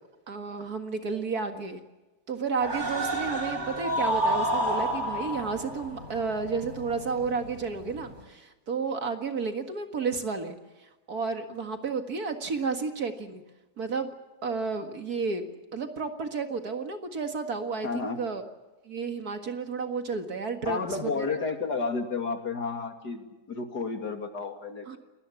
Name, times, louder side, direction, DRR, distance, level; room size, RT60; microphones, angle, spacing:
voice 1, 0.3-1.8 2.3-10.6 11.1-13.4 13.8-14.1 14.4-18.4 18.9-21.4 24.9-25.0, right 4 dB, 60° right, 6 dB, 2.3 m, -32 dB
sound 1, 2.6-8.2, right 1 dB, 25° right, 5.3 m, -31 dB
voice 2, 17.8-18.2 20.6-25.0, left 4 dB, 70° left, 5 dB, 3.2 m, -31 dB
29.5 x 19.0 x 7.1 m, 1.1 s
omnidirectional pair, 1.8 m